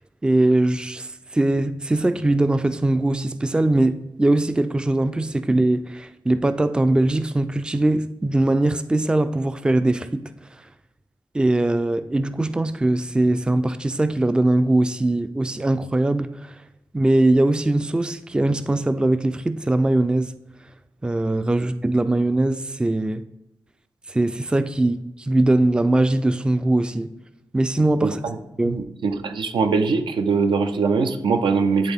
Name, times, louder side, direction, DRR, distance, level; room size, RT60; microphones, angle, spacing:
voice 1, 0.2-10.2 11.3-16.6 16.9-20.3 21.0-23.2 24.1-27.1 27.5-28.2 28.6-28.8, right 2 dB, 10° right, 0.3 m, -21 dB
voice 2, 28.6-31.9, right 4 dB, 85° right, 0.5 m, -22 dB
9.8 x 3.6 x 3.5 m
cardioid pair, 70°, 8 cm